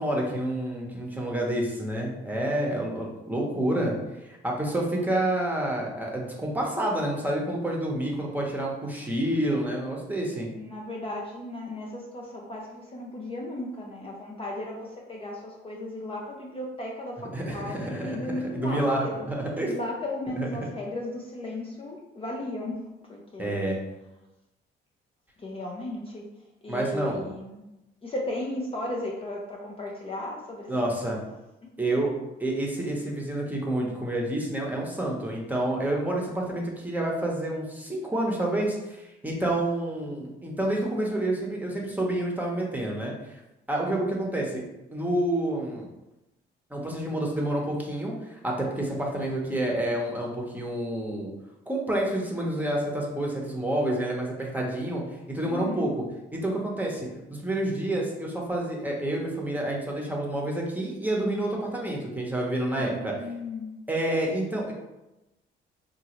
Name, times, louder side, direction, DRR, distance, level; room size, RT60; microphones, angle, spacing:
voice 1, 0.0-3.9 4.2-10.5 17.3-18.2 18.5-19.7 20.4-20.5 23.4-23.8 26.7-27.2 30.7-31.2 31.8-32.1 32.4-43.1 43.7-44.6 44.9-45.9 46.7-51.3 51.7-55.9 56.3-63.2 63.9-64.7, right 1 dB, 10° right, -2 dB, 0.9 m, -28 dB
voice 2, 10.6-19.2 19.6-22.8 23.1-23.6 25.4-26.3 26.6-27.6 28.0-31.0 55.5-55.9 62.8-63.7, left 1 dB, 30° left, -2 dB, 0.5 m, -35 dB
3.7 x 2.4 x 3.0 m, 0.97 s
cardioid pair, 90°, 20 cm